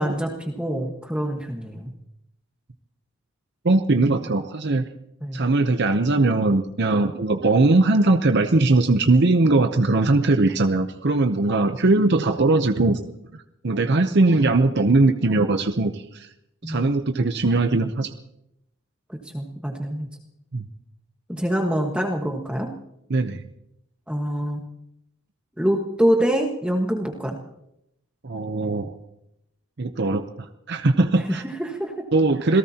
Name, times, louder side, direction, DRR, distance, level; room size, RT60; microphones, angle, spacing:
voice 1, 0.0-1.9 5.2-5.4 16.6-17.0 19.1-20.1 21.3-22.7 24.1-24.6 25.6-27.4 31.3-31.9 32.5-32.6, equal, 5° right, 1 dB, 1.4 m, -25 dB
voice 2, 3.6-4.8 5.3-13.0 13.6-16.3 16.6-18.1 20.5-20.7 23.1-23.4 28.2-28.9 29.8-30.3 30.7-31.4 32.1-32.6, right 2 dB, 55° right, 7 dB, 0.8 m, -20 dB
27.0 x 18.0 x 2.9 m, 0.80 s
head